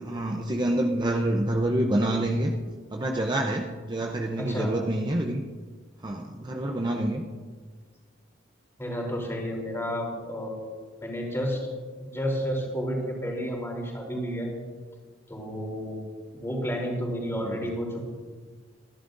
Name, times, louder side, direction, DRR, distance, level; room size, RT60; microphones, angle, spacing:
voice 1, 0.0-2.5 2.9-5.4 6.0-7.2 17.4-17.6, right 1 dB, 25° right, 2 dB, 0.7 m, -27 dB
voice 2, 4.4-4.7 8.8-11.7 12.1-14.5 15.3-16.0 16.3-18.0, equal, 15° left, -1 dB, 3.3 m, -31 dB
25.5 x 11.0 x 2.6 m, 1.5 s
head